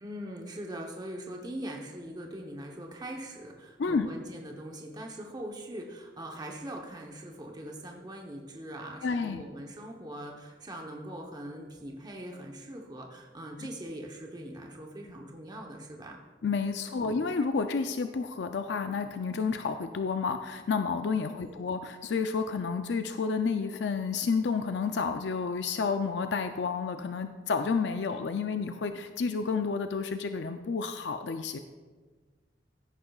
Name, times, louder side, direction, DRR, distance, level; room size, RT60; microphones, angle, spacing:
voice 1, 0.0-16.2 17.0-17.2 21.2-21.7, right 1 dB, 25° right, 0 dB, 0.9 m, -42 dB
voice 2, 9.0-9.4 16.4-31.6, left 5 dB, 75° left, 7 dB, 0.4 m, -30 dB
16.0 x 9.6 x 2.4 m, 1.4 s
head